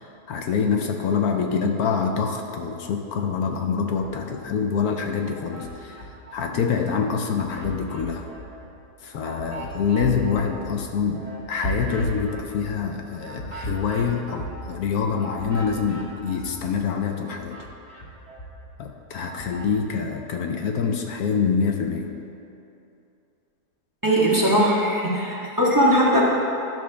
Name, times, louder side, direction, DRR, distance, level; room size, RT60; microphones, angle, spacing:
voice 1, 0.3-8.3 9.0-17.6 18.8-22.1, left 6 dB, 75° left, 3 dB, 1.1 m, -26 dB
sound 1, 3.9-4.7 5.1-6.7 7.1-16.8 17.1-19.7, right 1 dB, 25° left, 1.1 m, -37 dB
voice 2, 24.0-26.2, equal, 15° right, -6 dB, 1.1 m, -19 dB
12.5 x 6.0 x 3.4 m, 2.7 s
omnidirectional pair, 1.7 m